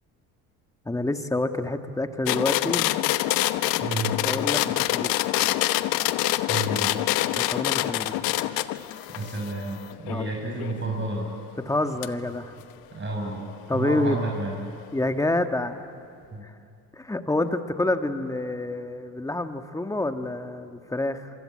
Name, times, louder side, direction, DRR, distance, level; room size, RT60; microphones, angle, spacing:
voice 1, 0.9-2.9 4.1-5.1 7.4-8.2 10.1-10.3 11.7-12.5 13.7-14.2 14.9-15.9 16.4-16.5 16.9-21.3, left 2 dB, 10° left, 7 dB, 1.8 m, -28 dB
sound 1, 2.3-10.8 12.0-12.1, left 16 dB, 75° left, 1.0 m, -26 dB
voice 2, 3.8-4.2 6.5-7.0 9.2-11.3 12.9-14.5 16.3-16.4, right 2 dB, 30° right, -1 dB, 5.9 m, -31 dB
27.0 x 24.5 x 8.7 m, 2.5 s
supercardioid pair, 90°, 36 cm